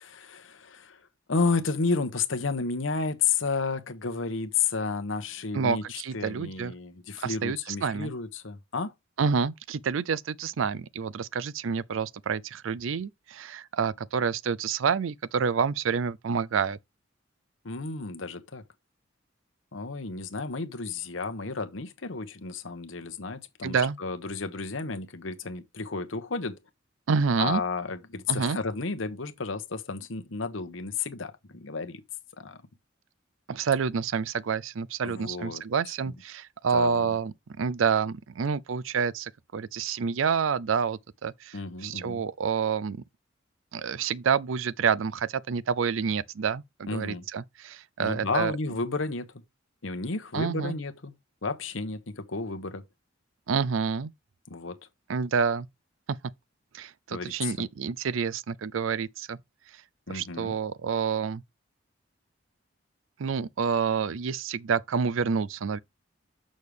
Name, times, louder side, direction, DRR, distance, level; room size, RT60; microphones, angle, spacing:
voice 1, 0.1-1.0 1.3-8.9 17.6-18.6 19.7-26.6 27.4-32.0 32.4-32.6 35.0-35.6 36.7-37.1 41.5-42.2 46.9-47.3 48.0-49.3 49.8-51.1 51.4-52.8 54.5-54.8 57.1-57.5 60.1-60.6, left 4 dB, 75° left, 1.0 m, -32 dB
voice 2, 5.5-6.7 7.2-8.1 9.2-16.8 23.6-24.0 27.1-27.6 28.3-28.6 33.5-43.0 43.7-48.5 50.3-50.8 53.5-54.1 55.1-55.7 56.7-59.4 60.1-61.4 63.2-65.8, right 6 dB, 80° right, 0.5 m, -28 dB
6.6 x 6.3 x 3.4 m
head